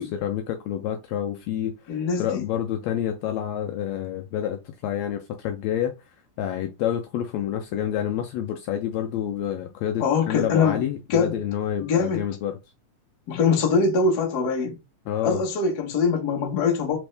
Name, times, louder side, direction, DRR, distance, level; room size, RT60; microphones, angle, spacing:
voice 1, 0.0-5.9 6.4-12.5 15.1-15.4, left 10 dB, 80° left, 1.6 m, -28 dB
voice 2, 1.9-2.4 10.0-10.8 11.1-11.4 11.8-12.3 13.3-14.7 15.2-17.0, left 5 dB, 55° left, 1.1 m, -23 dB
4.3 x 3.4 x 3.2 m
omnidirectional pair, 3.4 m